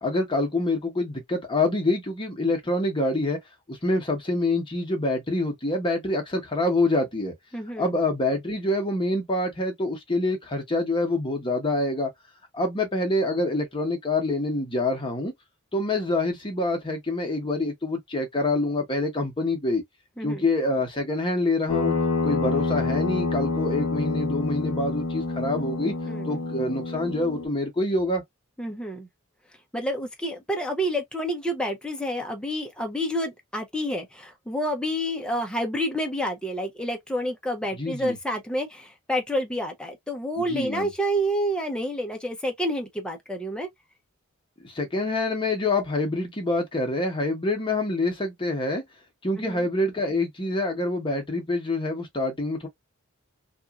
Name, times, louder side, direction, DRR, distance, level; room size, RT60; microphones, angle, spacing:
voice 1, 0.0-3.4 3.7-7.3 7.8-12.1 12.5-15.3 15.7-19.8 20.2-21.9 22.2-25.9 26.3-28.2 37.7-38.1 40.4-40.9 44.6-48.8 49.2-52.7, left 2 dB, 25° left, 0.9 m, -26 dB
voice 2, 7.5-7.9 20.2-20.4 26.1-26.3 28.6-29.1 29.7-43.7 49.4-49.6, equal, 5° left, 0.5 m, -29 dB
sound 1, 21.7-27.5, left 3 dB, 70° left, 0.9 m, -27 dB
2.9 x 2.4 x 2.3 m
head